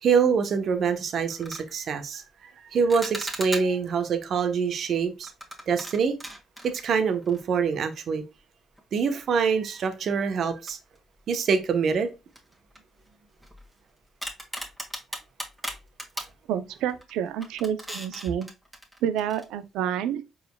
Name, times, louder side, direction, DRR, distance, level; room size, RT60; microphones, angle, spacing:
voice 1, 0.0-5.3 5.7-6.2 6.6-8.2 8.9-10.8 11.3-12.1, right 6 dB, 60° right, 0.9 m, -25 dB
sound 1, 0.7-0.9 1.3-1.7 2.9-3.9 5.2-7.6 7.9-8.0 8.8-8.9 10.7-11.3 11.7-11.8 12.3-13.8 14.2-16.4 16.9-17.1 17.4-19.4, right 1 dB, 5° right, 1.6 m, -38 dB
voice 2, 16.5-18.5 19.0-20.2, right 9 dB, 75° right, 0.5 m, -28 dB
5.0 x 4.8 x 2.2 m
supercardioid pair, 60°, 0 cm